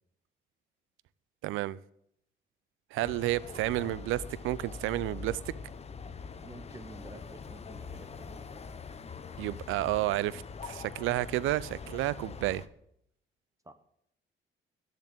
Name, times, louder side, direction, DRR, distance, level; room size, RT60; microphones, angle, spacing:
voice 1, 1.4-1.8 2.9-5.4 9.4-12.6, right 16 dB, 90° right, 20 dB, 0.4 m, -31 dB
sound 1, 3.0-12.7, left 5 dB, 30° left, 0.7 m, -43 dB
voice 2, 6.4-8.4 13.6-13.7, right 2 dB, 15° right, 10 dB, 0.8 m, -49 dB
8.2 x 7.2 x 7.9 m, 0.72 s
cardioid pair, 90°, 20 cm